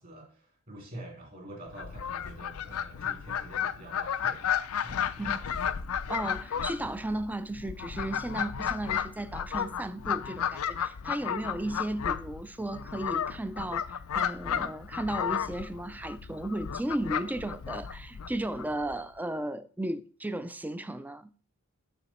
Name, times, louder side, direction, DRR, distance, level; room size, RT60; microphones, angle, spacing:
voice 1, 0.0-4.4 4.8-5.7, right 1 dB, 40° right, 2.9 m, -46 dB
Fowl, 1.7-19.0, left 8 dB, 75° left, 0.5 m, -33 dB
voice 2, 6.1-21.3, right 1 dB, 10° right, 0.4 m, -35 dB
6.9 x 6.2 x 4.3 m
head